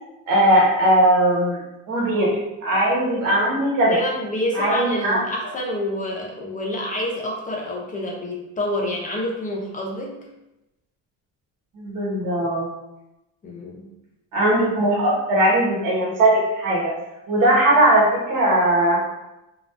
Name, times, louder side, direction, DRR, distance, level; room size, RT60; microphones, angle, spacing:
voice 1, 0.3-1.6 1.9-4.0 4.5-5.2 11.7-12.7 14.3-16.9 17.3-19.0, right 1 dB, 70° right, -3 dB, 1.2 m, -19 dB
voice 2, 3.9-10.3 13.4-13.9, left 1 dB, 25° left, -1 dB, 0.4 m, -27 dB
3.6 x 2.3 x 2.4 m, 0.94 s
cardioid pair, 165°, 33 cm